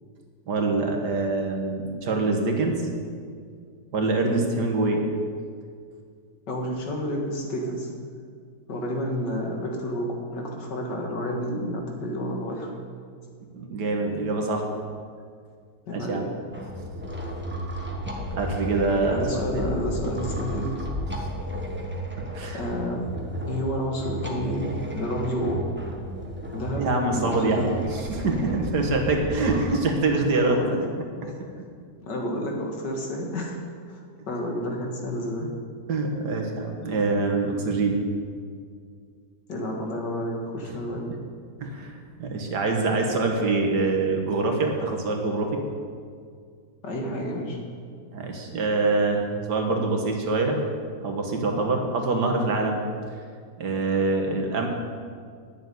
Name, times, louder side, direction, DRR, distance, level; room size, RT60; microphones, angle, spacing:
voice 1, 0.5-2.9 3.9-5.0 13.5-14.7 15.9-16.2 18.4-19.7 22.3-22.6 26.8-30.6 31.2-31.3 35.4-35.5 35.9-38.0 41.6-45.6 48.1-50.6 51.0-52.8 53.6-54.7, right 3 dB, 70° right, 2 dB, 2.0 m, -25 dB
voice 2, 6.5-7.9 8.7-12.7 15.9-16.3 19.1-20.7 22.5-23.0 23.5-25.6 26.5-27.7 30.3-30.8 31.2-31.3 32.0-33.6 33.9-35.5 39.5-41.1 46.8-47.6, equal, 80° left, 0 dB, 2.5 m, -30 dB
sound 1, 16.5-29.8, right 1 dB, 5° right, 1.1 m, -33 dB
10.5 x 6.9 x 9.4 m, 2.1 s
omnidirectional pair, 1.8 m